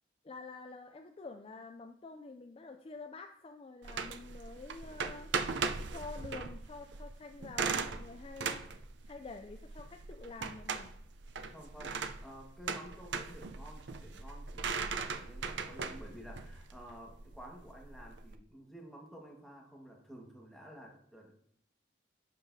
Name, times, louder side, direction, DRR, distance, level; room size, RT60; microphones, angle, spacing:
voice 1, 0.2-5.3 5.9-8.7 9.0-10.9, left 3 dB, 30° left, 6 dB, 0.4 m, -48 dB
sound 1, 3.8-18.3, right 5 dB, 75° right, 0.5 m, -39 dB
voice 2, 11.5-21.3, equal, ahead, -2 dB, 1.5 m, -52 dB
11.0 x 6.8 x 2.7 m, 0.66 s
head